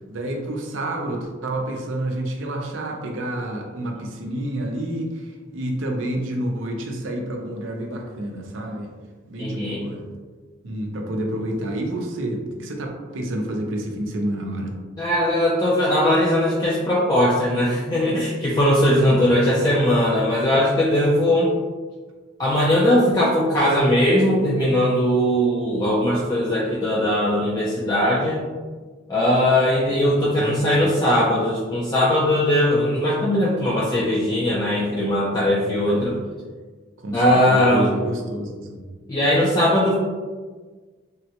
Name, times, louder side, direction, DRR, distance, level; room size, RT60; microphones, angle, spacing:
voice 1, 0.1-8.9 9.3-10.0 10.6-14.8 19.0-19.2 30.4-30.7 35.9-36.1 37.0-38.8, right 1 dB, 75° right, 1 dB, 0.5 m, -29 dB
voice 2, 9.4-9.8 15.0-21.5 22.4-28.4 29.1-36.2 37.1-37.9 39.1-39.9, left 1 dB, 20° left, -6 dB, 0.3 m, -19 dB
3.6 x 2.1 x 2.8 m, 1.4 s
head